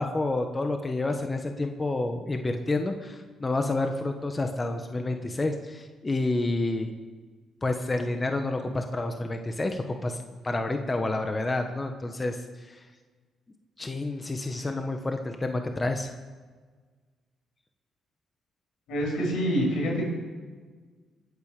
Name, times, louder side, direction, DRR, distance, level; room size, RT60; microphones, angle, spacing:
voice 1, 0.0-6.9 7.6-10.2 10.4-12.8 13.8-16.1, left 2 dB, 25° left, 5 dB, 1.4 m, -29 dB
voice 2, 18.9-20.0, equal, 85° left, -1 dB, 6.4 m, -26 dB
23.0 x 8.9 x 6.8 m, 1.5 s
cardioid pair, 90°, 0 cm